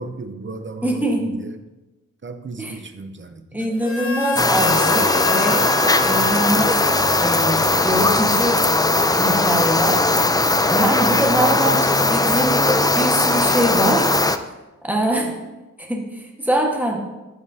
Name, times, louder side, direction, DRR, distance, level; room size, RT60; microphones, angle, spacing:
voice 1, 0.0-1.5 2.2-3.7, right 3 dB, 40° right, 8 dB, 0.7 m, -35 dB
voice 2, 0.8-1.4 2.6-2.8 3.5-5.7 6.0-6.8 7.2-8.7 9.0-10.0 10.7-12.6 12.9-14.1 14.8-15.3 15.8-17.0, right 1 dB, 5° right, 0 dB, 1.5 m, -23 dB
Harmonica, 3.8-8.7, left 4 dB, 45° left, 0.7 m, -29 dB
sound 1, 4.4-14.4, left 2 dB, 15° left, 0.3 m, -18 dB
14.0 x 5.2 x 2.8 m, 1.1 s
wide cardioid pair, 85°, 31 cm